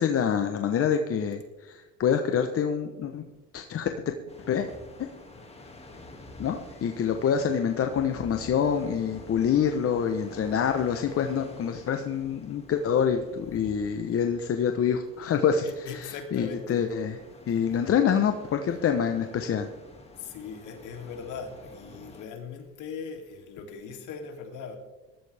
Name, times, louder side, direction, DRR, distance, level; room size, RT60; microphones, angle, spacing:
voice 1, 0.0-3.2 3.5-4.1 4.5-4.7 5.0-5.1 6.4-15.7 15.9-17.1 17.5-19.7, left 7 dB, 45° left, 1.1 m, -26 dB
sound 1, 4.3-22.3, left 2 dB, 20° left, 2.4 m, -48 dB
voice 2, 13.6-14.2 15.6-16.9 17.3-17.9 18.7-18.8 20.2-24.8, left 5 dB, 65° left, 3.2 m, -40 dB
19.0 x 13.5 x 3.6 m
supercardioid pair, 100°, 33 cm